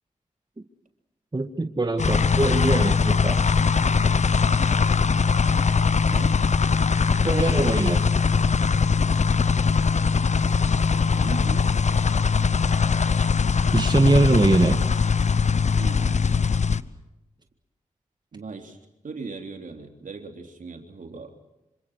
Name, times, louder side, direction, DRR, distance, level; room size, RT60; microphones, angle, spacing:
voice 1, 1.3-3.4 7.2-8.0 13.7-14.8, right 2 dB, 30° right, 6 dB, 1.9 m, -22 dB
sound 1, 2.0-16.8, left 5 dB, 55° left, 1.0 m, -21 dB
voice 2, 6.1-6.4 11.1-11.8 15.7-16.9 18.3-18.8 19.0-21.5, right 4 dB, 70° right, 4 dB, 3.6 m, -39 dB
27.0 x 26.0 x 6.4 m, 0.94 s
cardioid pair, 40°, 14 cm